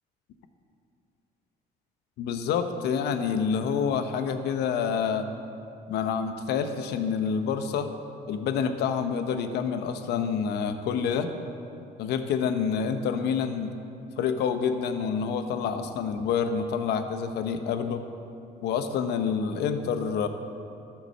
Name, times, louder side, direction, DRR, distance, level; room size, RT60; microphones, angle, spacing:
voice 1, 2.2-5.3 5.9-7.9 8.3-11.3 12.0-13.7 14.2-18.0 18.6-20.3, left 6 dB, 80° left, 8 dB, 0.8 m, -27 dB
13.5 x 5.8 x 6.6 m, 2.6 s
cardioid pair, 110°, 17 cm